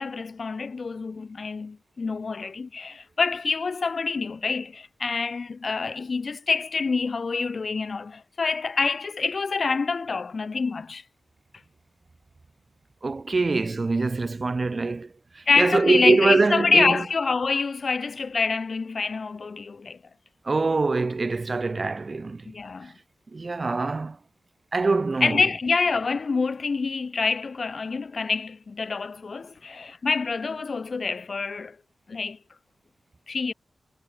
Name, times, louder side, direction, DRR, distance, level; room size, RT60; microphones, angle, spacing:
voice 1, 0.0-11.0 15.5-20.0 22.4-22.9 25.2-31.8 32.1-32.4 33.3-33.5, left 4 dB, 45° left, 1.5 m, -26 dB
voice 2, 13.0-17.0 20.5-22.4 23.3-24.2 24.7-25.4, right 3 dB, 35° right, 1.0 m, -24 dB
wide cardioid pair, 135°, 0 cm